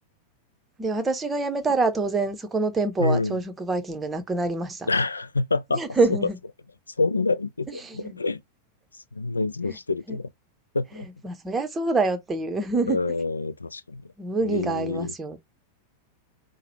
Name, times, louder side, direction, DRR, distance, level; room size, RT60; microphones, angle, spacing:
voice 1, 0.8-4.9 5.7-6.4 7.8-8.2 10.1-10.2 10.9-13.0 14.2-15.4, right 3 dB, 15° right, 0.8 m, -26 dB
voice 2, 3.0-3.4 4.9-5.8 7.0-8.4 9.1-10.3 10.7-11.1 12.9-14.0 14.4-15.1, left 3 dB, 80° left, 0.3 m, -27 dB
4.7 x 2.1 x 3.2 m
figure-of-eight pair, 90°, 0 cm